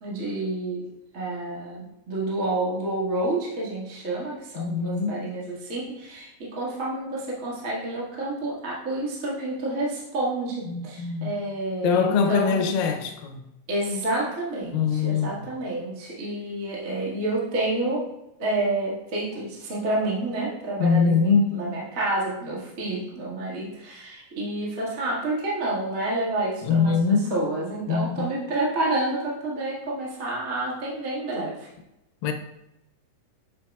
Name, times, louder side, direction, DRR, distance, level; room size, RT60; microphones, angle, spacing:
voice 1, 0.0-12.7 13.7-18.0 18.4-31.7, right 2 dB, 30° right, 1.7 m, -29 dB
voice 2, 4.6-5.3 10.7-11.4 11.8-13.4 14.6-15.4 20.8-21.5 26.6-27.4 27.9-28.3 32.2-32.3, left 5 dB, 80° left, 2.4 m, -23 dB
9.8 x 6.4 x 2.4 m
omnidirectional pair, 4.0 m